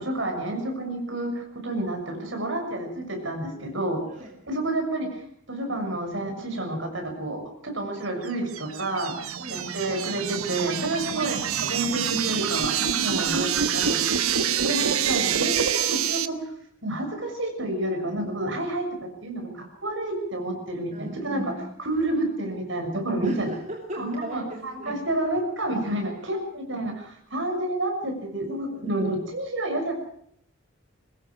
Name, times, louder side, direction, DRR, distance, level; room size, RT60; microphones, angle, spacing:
voice 1, 0.0-4.0 4.5-5.1 5.5-9.1 9.5-14.2 14.6-16.4 16.8-21.4 21.8-23.5 24.0-29.9, right 1 dB, 60° right, 3 dB, 6.7 m, -29 dB
voice 2, 4.0-4.3 9.4-9.8 11.2-11.4 14.7-15.0 20.9-21.7 23.2-25.0, right 1 dB, 35° right, 1 dB, 2.8 m, -38 dB
sound 1, 8.3-16.3, right 8 dB, 85° right, 1.2 m, -26 dB
23.0 x 20.5 x 6.3 m, 0.65 s
head